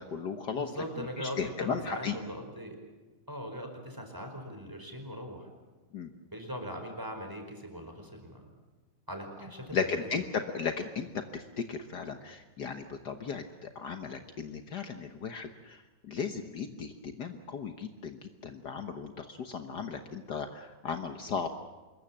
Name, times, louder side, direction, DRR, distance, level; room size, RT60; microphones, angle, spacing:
voice 1, 0.0-0.7 1.2-2.1 5.9-6.1 9.7-11.1 11.3-15.8 16.0-21.5, left 6 dB, 60° left, 7 dB, 1.7 m, -36 dB
voice 2, 0.5-2.8 3.3-5.5 6.3-8.5 9.1-10.2, equal, 10° right, 3 dB, 4.7 m, -40 dB
26.5 x 22.0 x 7.5 m, 1.2 s
omnidirectional pair, 2.1 m